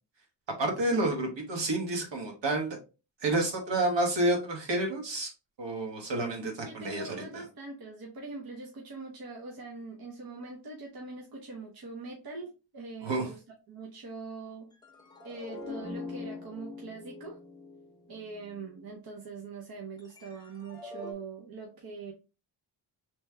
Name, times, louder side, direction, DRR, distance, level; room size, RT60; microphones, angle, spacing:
voice 1, 0.6-2.8 3.2-5.3 5.6-7.4 13.0-13.3, right 2 dB, 75° right, 2 dB, 1.4 m, -29 dB
voice 2, 6.6-13.4 13.7-14.7 15.2-17.4 18.1-22.1, right 3 dB, 55° right, 0 dB, 0.9 m, -43 dB
sound 1, 14.7-19.0 20.0-21.1, left 3 dB, 10° left, 0.8 m, -44 dB
3.3 x 3.0 x 3.3 m, 0.31 s
wide cardioid pair, 135°, 44 cm